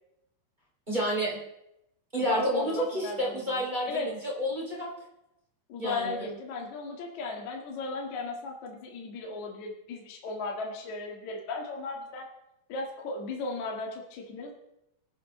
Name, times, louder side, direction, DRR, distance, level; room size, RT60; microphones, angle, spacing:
voice 1, 0.9-1.4 2.1-4.9 5.8-6.3, equal, 15° right, -3 dB, 1.8 m, -30 dB
voice 2, 2.2-4.1 5.7-12.3 12.7-14.5, left 3 dB, 50° left, 0 dB, 2.5 m, -36 dB
24.0 x 9.1 x 3.2 m, 0.84 s
omnidirectional pair, 5.4 m